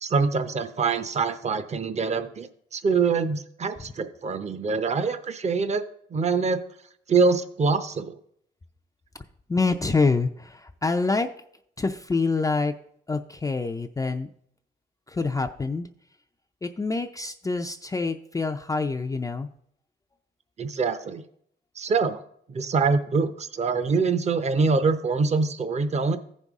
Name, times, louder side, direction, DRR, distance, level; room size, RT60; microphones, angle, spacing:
voice 1, 0.0-5.8 6.1-6.6 7.1-8.2 20.6-21.2 21.8-22.2 22.5-26.2, right 4 dB, 35° right, 11 dB, 0.8 m, -24 dB
voice 2, 9.5-11.3 11.8-12.7 13.1-14.3 15.1-15.9 16.6-19.5, left 3 dB, 15° left, 4 dB, 0.4 m, -26 dB
14.5 x 5.4 x 3.6 m, 0.68 s
cardioid pair, 90°, 20 cm